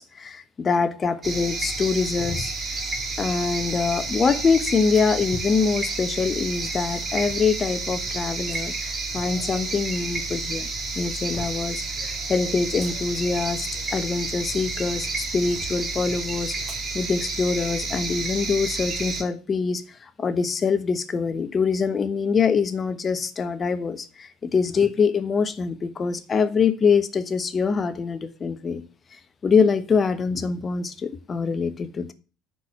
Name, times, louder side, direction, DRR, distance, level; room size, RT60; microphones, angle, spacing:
voice 1, 0.0-2.5 3.2-10.7 11.0-28.8 29.1-32.1, left 5 dB, 30° left, 1.1 m, -24 dB
sound 1, 1.2-19.2, right 3 dB, 30° right, 2.5 m, -30 dB
sound 2, 4.9-5.2 6.3-7.6 8.5-8.6 9.8-10.4 10.8-11.7 12.5-14.6 15.0-15.7 16.7-16.9 17.3-17.4 18.0-18.2, right 2 dB, 10° right, 3.4 m, -46 dB
9.8 x 4.8 x 5.9 m
figure-of-eight pair, 60°, 0 cm